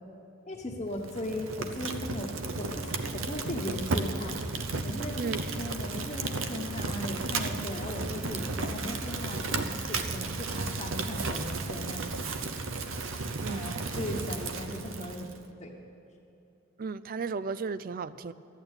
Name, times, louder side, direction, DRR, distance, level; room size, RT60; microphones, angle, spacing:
voice 1, 0.5-4.4 4.8-12.3 13.5-15.3 15.6-15.7, left 1 dB, 30° left, -4 dB, 1.1 m, -38 dB
Fire, 1.0-15.4, right 3 dB, 80° right, 0.8 m, -34 dB
voice 2, 13.4-13.7 16.8-18.3, right 4 dB, 45° right, 16 dB, 0.4 m, -34 dB
12.5 x 9.0 x 8.8 m, 2.6 s
head